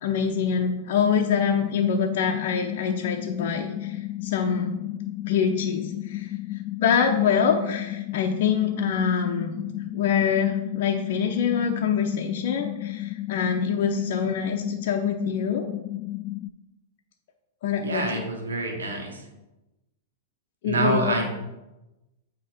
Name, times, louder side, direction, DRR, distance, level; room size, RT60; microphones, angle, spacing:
voice 1, 0.0-4.8 5.3-6.3 6.8-9.5 9.9-15.7 17.6-18.2 20.6-21.2, left 7 dB, 60° left, 2 dB, 0.7 m, -25 dB
sound 1, 0.9-16.5, left 16 dB, 30° left, 0.3 m, -33 dB
voice 2, 17.8-19.2 20.6-21.2, right 2 dB, 90° right, 1 dB, 1.3 m, -26 dB
7.7 x 3.0 x 4.9 m, 1.0 s
hypercardioid pair, 115°, 0 cm